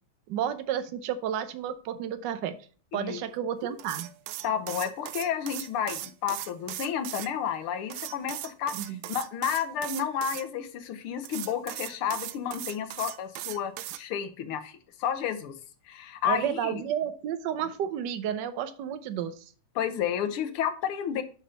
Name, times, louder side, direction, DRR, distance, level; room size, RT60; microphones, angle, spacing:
voice 1, 0.3-2.5 2.9-4.1 8.7-9.0 16.2-19.4, right 9 dB, 65° right, 11 dB, 1.3 m, -31 dB
voice 2, 2.9-3.2 4.4-14.7 15.0-15.6 15.9-16.7 19.7-21.2, left 8 dB, 90° left, 9 dB, 1.8 m, -31 dB
sound 1, 3.8-7.3 7.9-10.4 11.2-14.0, right 14 dB, 85° right, 1.4 m, -38 dB
6.9 x 5.0 x 5.6 m, 0.40 s
omnidirectional pair, 2.3 m